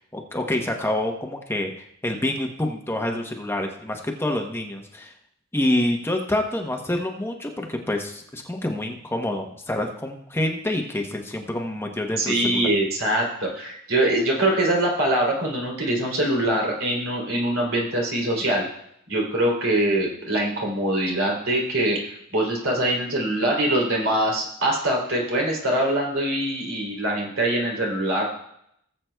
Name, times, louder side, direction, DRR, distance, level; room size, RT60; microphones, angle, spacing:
voice 1, 0.0-1.7 2.0-5.1 5.5-12.7, left 1 dB, 10° left, 2 dB, 0.8 m, -27 dB
voice 2, 12.2-18.6 19.1-22.0 22.3-28.2, right 1 dB, 85° right, -1 dB, 3.0 m, -23 dB
19.0 x 7.6 x 2.3 m, 0.73 s
head